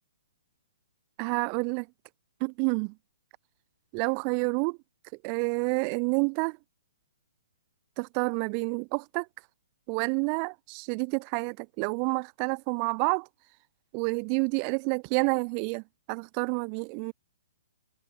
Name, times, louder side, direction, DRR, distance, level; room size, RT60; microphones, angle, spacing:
voice 1, 1.2-1.9 2.4-2.9 3.9-4.8 5.2-6.6 8.0-9.3 9.9-13.3 13.9-17.1, right 40 dB or more, 20° right, 0.4 m, -29 dB
hypercardioid pair, 175°, 0 cm